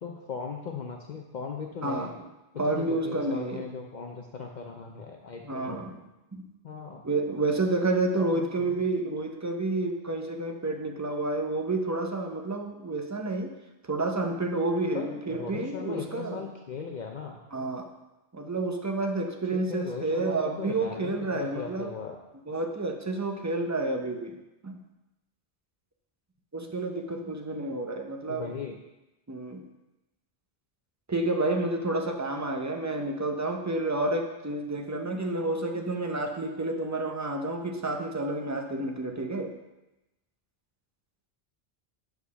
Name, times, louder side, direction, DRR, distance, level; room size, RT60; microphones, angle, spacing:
voice 1, 0.0-2.1 2.5-5.8 6.6-7.0 8.2-8.8 14.9-17.4 19.5-22.2 28.3-28.8, left 5 dB, 55° left, 2 dB, 0.7 m, -38 dB
voice 2, 1.8-2.1 2.6-3.7 5.4-6.0 6.3-6.4 7.0-13.6 13.9-16.4 17.5-17.9 18.3-21.9 22.5-24.4 24.6-24.8 26.5-28.5 29.3-29.6 31.1-39.5, right 2 dB, 20° right, 3 dB, 0.6 m, -30 dB
6.5 x 4.9 x 5.6 m, 1.0 s
omnidirectional pair, 1.0 m